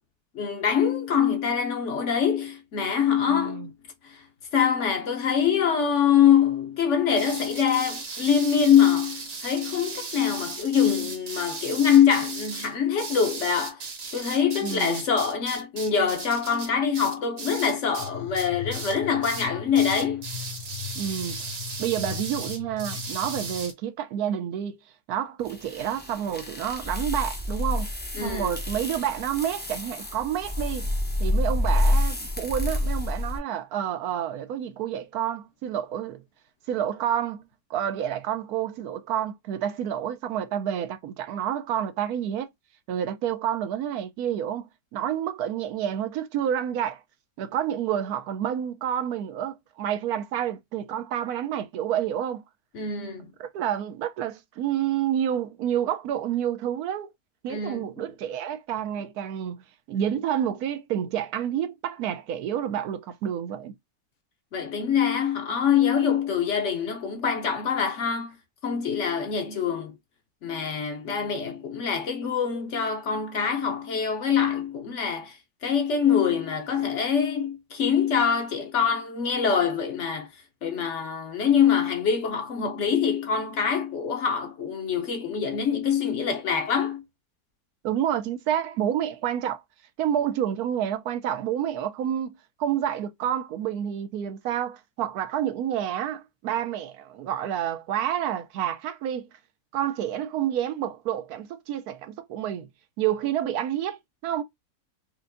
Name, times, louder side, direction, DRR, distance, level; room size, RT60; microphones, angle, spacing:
voice 1, 0.3-3.7 4.0-4.2 4.5-13.8 14.1-20.3 28.2-28.5 52.7-53.3 57.5-57.9 64.5-68.4 68.6-70.0 70.4-80.3 80.6-87.0, left 7 dB, 60° left, 0.9 m, -24 dB
voice 2, 3.3-3.7 14.6-15.0 20.9-21.5 21.8-24.8 25.1-27.9 28.2-30.9 31.2-36.2 36.7-42.5 42.9-47.0 47.4-52.4 53.4-57.1 57.4-63.7 87.8-89.6 90.0-99.3 99.7-102.7 103.0-104.4, right 10 dB, 80° right, 1.1 m, -29 dB
sound 1, 7.1-18.1 18.3-19.0 19.2-19.5 19.7-23.7, right 4 dB, 50° right, 1.1 m, -37 dB
sound 2, 18.0-23.7, left 10 dB, 80° left, 1.1 m, -39 dB
sound 3, 25.5-33.4, left 1 dB, 15° left, 0.3 m, -28 dB
4.5 x 2.6 x 2.5 m
omnidirectional pair, 1.6 m